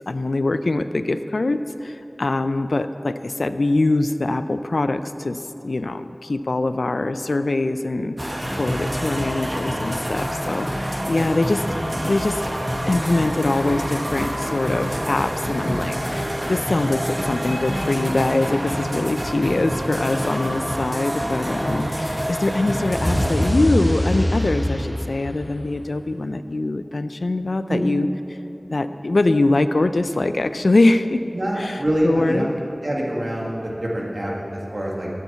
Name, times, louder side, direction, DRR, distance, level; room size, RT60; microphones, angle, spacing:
voice 1, 0.1-11.6 12.0-12.5 12.9-28.1 28.7-31.2 31.6-32.5, left 2 dB, 90° left, 11 dB, 0.4 m, -23 dB
sound 1, 8.2-23.5, equal, 20° right, 1.1 m, -27 dB
sound 2, 22.9-26.0, equal, ahead, 0.9 m, -24 dB
voice 2, 31.3-32.5 32.8-35.1, equal, 70° right, -3 dB, 1.9 m, -25 dB
8.0 x 7.3 x 8.1 m, 2.9 s
wide cardioid pair, 50°, 0 cm